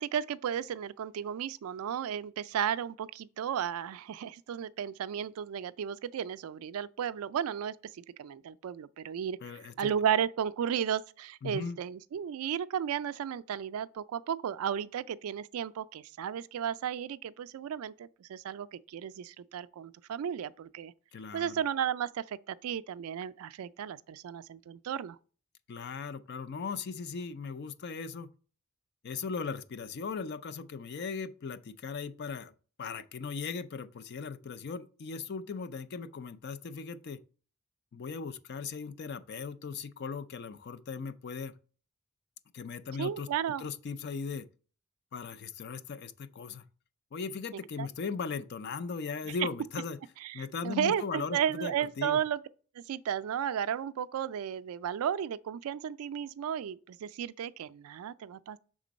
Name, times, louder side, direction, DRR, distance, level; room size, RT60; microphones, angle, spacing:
voice 1, 0.0-20.9 21.3-25.2 43.0-43.6 47.8-47.9 49.3-49.4 50.2-52.4 52.8-58.6, right 8 dB, 80° right, 0.3 m, -34 dB
voice 2, 9.4-9.9 11.4-11.8 21.1-21.6 25.7-28.3 29.0-32.5 32.8-37.2 37.9-41.6 42.5-43.3 43.6-44.5 45.1-46.6 47.1-50.0 50.3-52.2, left 5 dB, 50° left, 0.4 m, -38 dB
5.9 x 3.7 x 5.1 m
head